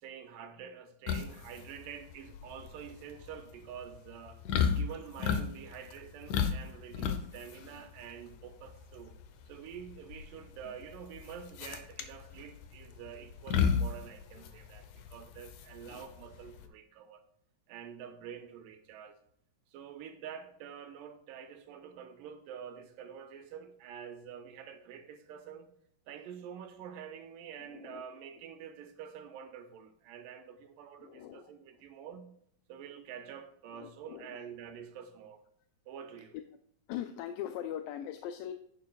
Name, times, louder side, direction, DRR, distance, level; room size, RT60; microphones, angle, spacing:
voice 1, 0.0-4.4 4.8-9.2 9.5-17.2 17.7-19.2 19.7-25.7 26.1-32.3 32.7-35.4 35.9-36.4, right 8 dB, 80° right, 2.6 m, -47 dB
sound 1, 1.1-16.6, left 7 dB, 75° left, 2.0 m, -34 dB
voice 2, 27.7-28.0 31.0-31.5 33.7-34.3 36.9-38.5, left 10 dB, 90° left, 2.3 m, -40 dB
10.5 x 9.2 x 2.3 m
omnidirectional pair, 3.9 m